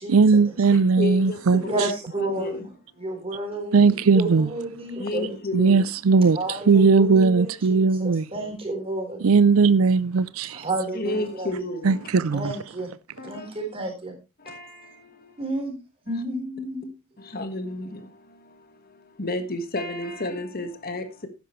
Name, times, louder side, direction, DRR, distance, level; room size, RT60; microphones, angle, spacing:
voice 1, 0.1-1.6 3.7-4.5 5.5-6.4 6.7-8.3 9.2-10.6 11.8-12.5, right 4 dB, 90° right, 0.5 m, -18 dB
voice 2, 0.7-1.9 2.1-2.7 3.1-3.2 5.0-5.8 10.9-12.1 13.2-13.5 14.4-15.4 16.1-16.2 17.2-21.3, left 2 dB, 45° left, 1.5 m, -32 dB
voice 3, 1.6-2.7 3.0-5.4 6.3-9.2 10.5-11.5 12.3-12.9 13.2-14.1 15.4-15.7 16.1-16.9, right 2 dB, 30° right, 4.3 m, -31 dB
12.0 x 10.5 x 3.2 m
head